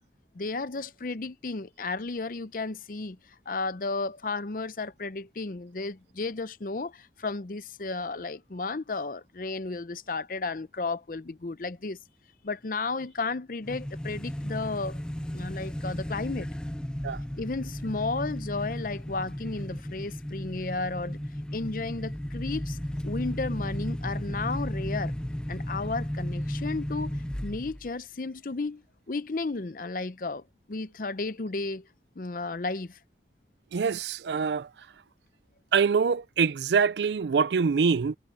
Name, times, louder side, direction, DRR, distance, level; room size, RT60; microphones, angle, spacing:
voice 1, 0.3-3.2 3.5-12.0 12.4-15.0 15.3-16.5 17.4-21.2 21.5-22.8 23.0-25.1 25.5-28.8 29.1-31.9 32.2-33.0, left 3 dB, 50° left, 0.6 m, -33 dB
sound 1, 13.6-27.9, equal, 5° left, 0.4 m, -34 dB
voice 2, 33.7-34.7 35.7-38.2, right 5 dB, 80° right, 0.4 m, -24 dB
head